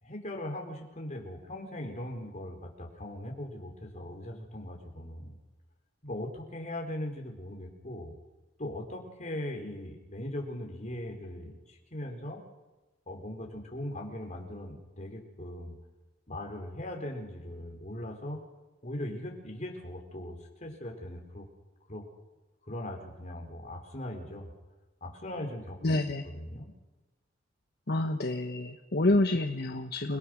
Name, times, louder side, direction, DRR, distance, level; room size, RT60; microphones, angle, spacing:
voice 1, 0.0-5.4 6.0-8.1 8.6-12.4 13.1-15.8 16.3-18.4 18.8-21.5 21.9-22.0 22.6-24.5 25.0-26.0 26.2-26.7, left 1 dB, 40° left, 1 dB, 4.4 m, -39 dB
voice 2, 25.8-26.2 27.9-30.2, left 2 dB, 55° left, 5 dB, 1.3 m, -28 dB
29.5 x 19.0 x 6.5 m, 1.1 s
head